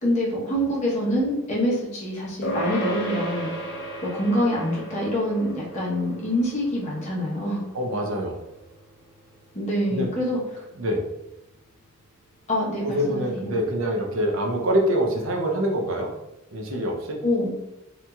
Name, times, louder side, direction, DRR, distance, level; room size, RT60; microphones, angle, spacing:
voice 1, 0.0-3.5 4.0-7.6 9.5-10.7 12.5-13.5 17.2-17.5, equal, 35° left, -5 dB, 0.9 m, -25 dB
sound 1, 2.4-12.1, right 1 dB, 50° left, 0.5 m, -36 dB
voice 2, 7.7-8.4 9.9-10.1 10.7-11.0 12.8-16.1 16.5-17.2, equal, 65° right, 1 dB, 0.6 m, -25 dB
2.8 x 2.7 x 2.3 m, 0.92 s
head